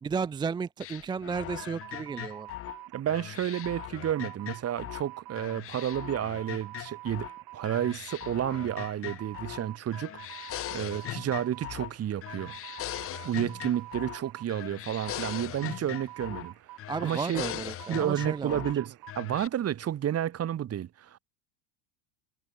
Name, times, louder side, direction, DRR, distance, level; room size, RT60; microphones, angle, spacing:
voice 1, 0.0-2.5 16.9-18.6, right 5 dB, 10° right, 0.4 m, -33 dB
sound 1, 0.8-5.1 5.4-7.3 7.6-9.7 9.9-12.0 12.2-14.2 14.5-16.5 16.8-18.8 19.1-19.5, left 14 dB, 30° left, 0.8 m, -40 dB
sound 2, 1.5-19.2, right 18 dB, 50° right, 5.2 m, -48 dB
voice 2, 2.9-7.3 7.5-10.4 10.7-12.5 13.2-16.5 17.0-17.4 17.9-21.2, right 10 dB, 30° right, 3.7 m, -31 dB
supercardioid pair, 150°, 47 cm